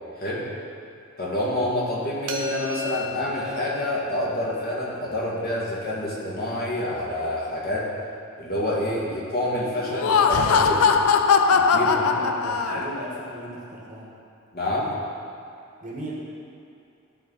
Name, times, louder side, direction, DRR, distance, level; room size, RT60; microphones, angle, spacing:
voice 1, 1.2-7.9 8.4-10.9 11.5-11.9 12.7-12.8 14.5-14.9, left 1 dB, 45° left, -6 dB, 1.9 m, -27 dB
sound 1, 2.3-8.1, left 2 dB, 75° right, 1.0 m, -36 dB
Laughter, 9.8-13.1, left 5 dB, 80° left, 0.4 m, -20 dB
voice 2, 11.7-14.1 15.8-16.1, right 1 dB, 35° right, -4 dB, 1.5 m, -37 dB
13.5 x 4.7 x 4.1 m, 2.6 s
head